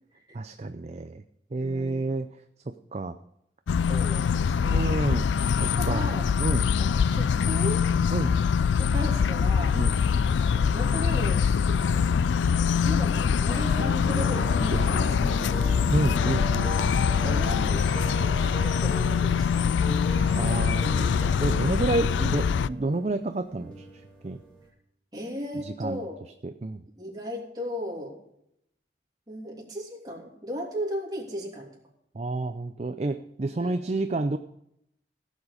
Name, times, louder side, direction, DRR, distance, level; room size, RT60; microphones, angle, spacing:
voice 1, 0.3-1.2 1.5-2.3 2.9-3.1 4.7-5.3 5.6-6.7 8.1-8.3 9.7-10.0 14.7-14.9 15.9-16.7 20.3-24.4 25.6-26.0 26.4-26.8 32.1-34.4, right 2 dB, 35° right, 8 dB, 0.5 m, -29 dB
voice 2, 1.5-2.0 3.9-5.1 5.6-6.3 6.8-7.9 8.8-9.9 10.4-14.7 15.3-15.8 17.2-19.7 25.1-26.2 27.0-28.2 29.3-31.8 33.6-33.8, equal, 20° right, -2 dB, 3.0 m, -37 dB
sound 1, 3.7-22.7, left 6 dB, 90° left, 0.3 m, -24 dB
sound 2, 13.4-24.7, equal, 5° left, 3.0 m, -37 dB
15.5 x 7.3 x 5.0 m, 0.76 s
head